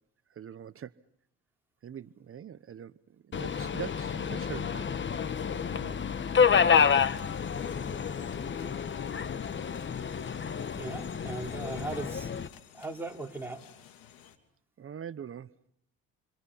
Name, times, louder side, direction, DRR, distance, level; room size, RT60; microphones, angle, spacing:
voice 1, 0.3-0.9 1.8-4.9 5.7-6.2 14.8-15.5, right 9 dB, 40° right, 0.9 m, -43 dB
Subway metro underground, 3.3-12.5, left 7 dB, 35° left, 1.2 m, -29 dB
sound 1, 6.7-14.4, left 10 dB, 75° left, 2.9 m, -54 dB
voice 2, 10.7-12.3 12.7-13.6, right 3 dB, 5° right, 4.1 m, -38 dB
29.0 x 25.0 x 5.6 m
supercardioid pair, 80°, 35 cm